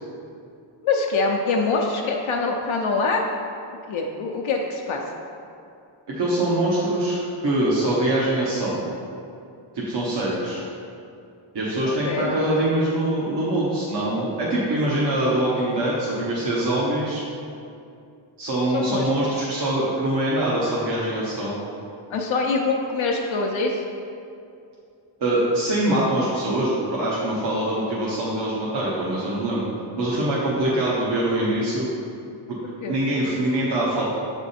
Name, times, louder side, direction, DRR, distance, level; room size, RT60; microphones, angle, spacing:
voice 1, 0.8-3.2 3.9-5.0 12.0-12.3 18.7-19.1 22.1-23.8 32.6-33.0, left 3 dB, 80° left, 0 dB, 0.6 m, -24 dB
voice 2, 6.1-8.9 9.7-10.6 11.5-17.2 18.4-21.6 25.2-29.7 30.0-31.9 32.5-32.6 32.9-34.0, right 1 dB, 60° right, -7 dB, 1.0 m, -23 dB
7.5 x 3.5 x 4.1 m, 2.5 s
wide cardioid pair, 150°, 47 cm